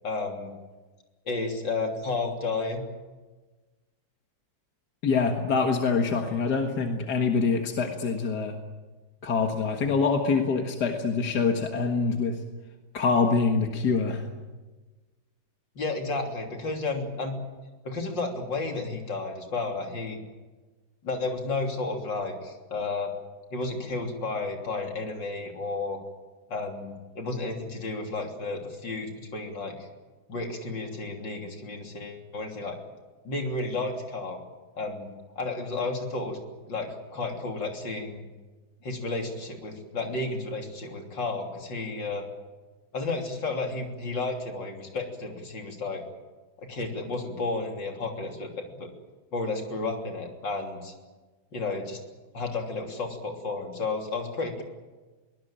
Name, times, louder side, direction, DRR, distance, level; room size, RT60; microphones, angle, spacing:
voice 1, 0.0-0.5 1.3-2.8 15.8-17.4 17.8-20.2 21.0-23.1 23.5-26.0 26.5-29.9 30.3-32.8 33.2-34.4 34.8-35.1 35.4-36.4 36.7-38.2 38.8-42.2 42.9-46.0 46.6-48.9 49.3-50.9 51.5-52.0 52.3-54.6, left 3 dB, 75° left, 3 dB, 3.9 m, -32 dB
voice 2, 5.0-8.6 9.2-12.4 12.9-14.3, left 4 dB, 60° left, 3 dB, 2.2 m, -25 dB
23.0 x 19.0 x 8.8 m, 1.3 s
omnidirectional pair, 2.0 m